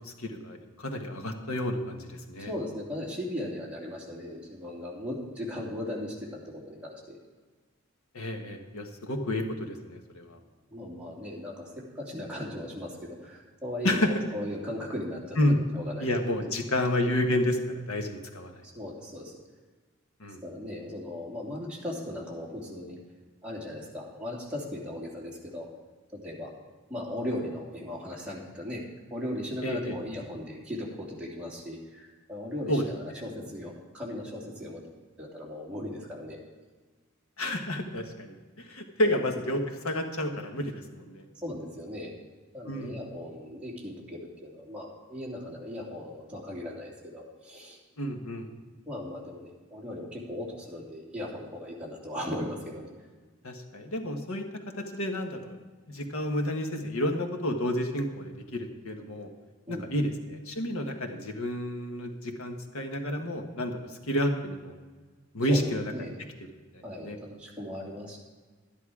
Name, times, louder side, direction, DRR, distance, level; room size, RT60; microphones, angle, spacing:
voice 1, 0.0-2.5 8.1-10.4 13.8-14.1 15.4-15.6 16.0-18.6 20.2-20.4 29.6-30.0 32.7-32.8 37.4-41.2 42.6-43.0 48.0-48.5 53.4-55.6 55.9-59.3 59.7-63.8 64.1-64.7 65.3-65.9 66.7-67.2, left 1 dB, 85° left, 4 dB, 1.5 m, -30 dB
voice 2, 2.4-7.2 10.7-11.7 11.9-16.8 18.7-19.3 20.4-23.0 23.4-25.7 26.1-26.5 26.9-28.8 29.1-34.8 35.2-36.4 39.0-39.1 41.3-42.1 42.5-47.8 48.9-52.9 59.7-60.0 65.4-66.1 66.8-68.2, left 1 dB, 5° right, -5 dB, 2.8 m, -38 dB
12.0 x 11.0 x 4.9 m, 1.4 s
head